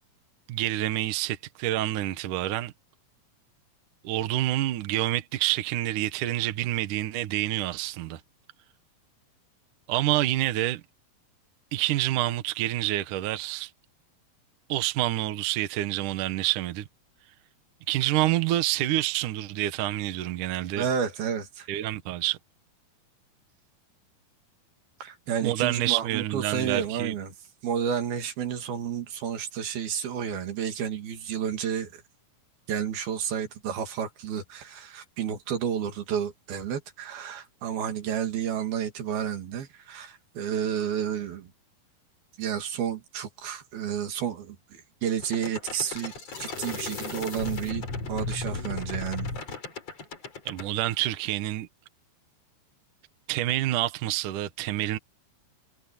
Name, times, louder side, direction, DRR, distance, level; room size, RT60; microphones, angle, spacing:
voice 1, 0.5-2.7 4.0-8.2 9.9-10.8 11.7-13.7 14.7-16.8 17.9-20.9 21.7-22.4 25.4-27.1 50.5-51.7 53.3-55.0, right 15 dB, 65° right, 2.5 m, -27 dB
voice 2, 20.8-21.7 25.0-27.3 27.6-32.0 32.7-41.5 42.4-49.3, right 8 dB, 85° right, 4.3 m, -31 dB
sound 1, 45.2-50.7, left 3 dB, 45° left, 5.4 m, -35 dB
omnidirectional pair, 4.2 m